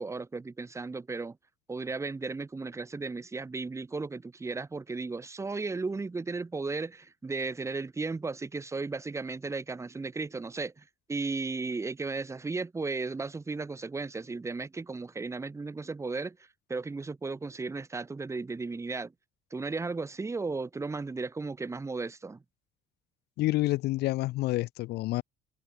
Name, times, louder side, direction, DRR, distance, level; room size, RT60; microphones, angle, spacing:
voice 1, 0.0-1.4 1.7-19.1 19.5-22.4, right 3 dB, 15° right, 1.1 m, -35 dB
voice 2, 23.4-25.2, left 18 dB, 75° left, 0.5 m, -28 dB
cardioid pair, 110°, 17 cm